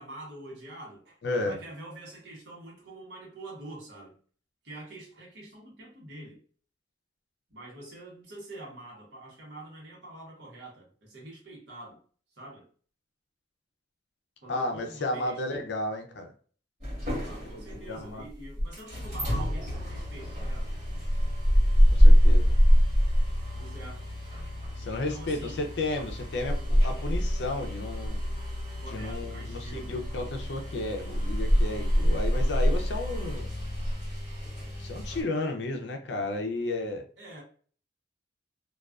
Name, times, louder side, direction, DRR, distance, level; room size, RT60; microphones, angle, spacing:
voice 1, 0.0-4.1 4.6-6.4 7.5-12.0 12.3-12.7 14.4-15.6 17.2-20.7 23.0-23.1 23.5-24.1 24.9-25.7 28.8-29.9 37.2-37.4, right 1 dB, 70° right, 1.0 m, -45 dB
voice 2, 1.2-1.6 14.5-16.3 17.5-17.6 17.9-18.3 21.9-22.5 24.8-28.2 28.9-33.5 34.8-37.0, left 2 dB, 65° left, 0.5 m, -33 dB
sound 1, 16.8-35.2, equal, 40° right, 1.1 m, -25 dB
2.3 x 2.3 x 2.3 m
head